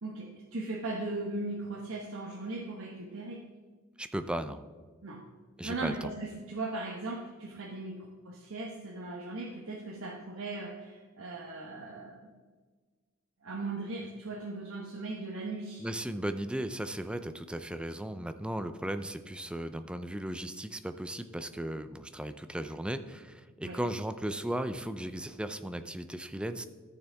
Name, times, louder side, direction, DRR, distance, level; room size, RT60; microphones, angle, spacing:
voice 1, 0.0-3.4 5.0-5.2 5.6-12.3 13.4-15.8 23.6-23.8, right 2 dB, 75° right, -1 dB, 1.0 m, -38 dB
voice 2, 4.0-4.6 5.6-6.1 15.8-26.7, right 1 dB, 5° right, 10 dB, 0.4 m, -36 dB
13.5 x 6.8 x 3.5 m, 1.4 s
head